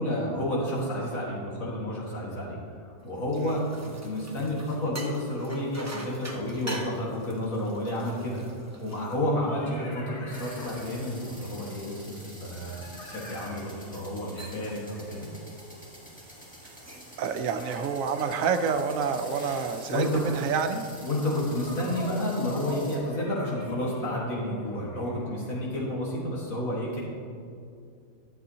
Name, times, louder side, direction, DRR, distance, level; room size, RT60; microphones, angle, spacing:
voice 1, 0.0-3.6 4.0-12.8 13.1-15.3 19.9-20.1 21.0-27.0, left 1 dB, 70° left, -6 dB, 2.1 m, -31 dB
sound 1, 3.0-9.8 10.3-13.3 13.8-14.1 14.4-14.8 15.2-15.5 16.6-17.2, right 1 dB, 15° right, 0.5 m, -45 dB
sound 2, 7.6-7.7 9.0-11.4 12.7-16.1 17.3-20.4 21.6-25.8, left 1 dB, 55° left, 1.6 m, -43 dB
sound 3, 10.3-23.0, equal, 5° left, 1.7 m, -47 dB
voice 2, 17.2-20.9, right 6 dB, 75° right, 8 dB, 0.9 m, -28 dB
12.0 x 7.6 x 2.8 m, 2.4 s
omnidirectional pair, 1.5 m